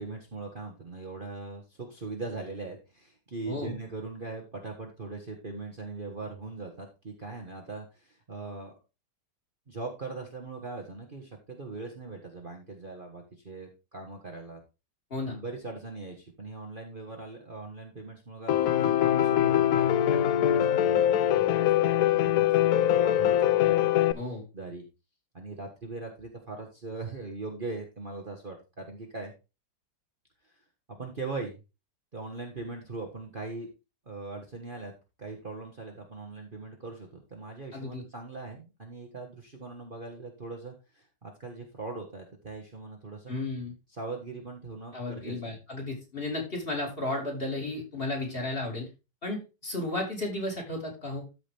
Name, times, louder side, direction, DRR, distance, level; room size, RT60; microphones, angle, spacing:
voice 1, 0.0-8.7 9.7-14.6 15.3-23.9 24.5-24.8 25.3-29.3 30.9-31.6 32.1-33.7 34.1-34.9 35.2-43.3 43.9-45.6, right 3 dB, 30° right, 1 dB, 1.4 m, -40 dB
Piano, 18.5-24.1, left 11 dB, 70° left, 0.9 m, -23 dB
voice 2, 24.1-24.4 37.7-38.0 43.3-43.7 44.9-48.9 49.2-51.2, left 2 dB, 30° left, 0 dB, 3.0 m, -33 dB
13.5 x 5.0 x 3.4 m, 0.27 s
omnidirectional pair, 1.9 m